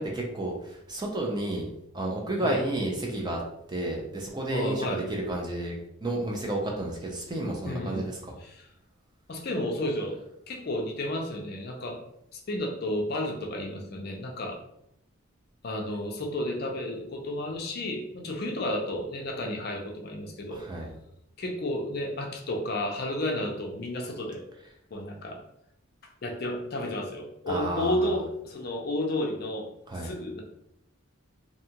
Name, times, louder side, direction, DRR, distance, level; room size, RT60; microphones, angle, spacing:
voice 1, 0.0-3.4 3.7-8.4 20.5-20.9 27.5-28.2 29.9-30.1, right 1 dB, 20° right, -1 dB, 0.4 m, -31 dB
voice 2, 4.5-5.0 7.6-8.1 8.4-8.7 9.3-12.0 12.5-14.6 15.6-20.6 21.4-24.5 24.9-25.4 26.2-29.7 30.0-30.4, left 1 dB, 45° left, 2 dB, 0.4 m, -32 dB
2.7 x 2.3 x 2.8 m, 0.78 s
head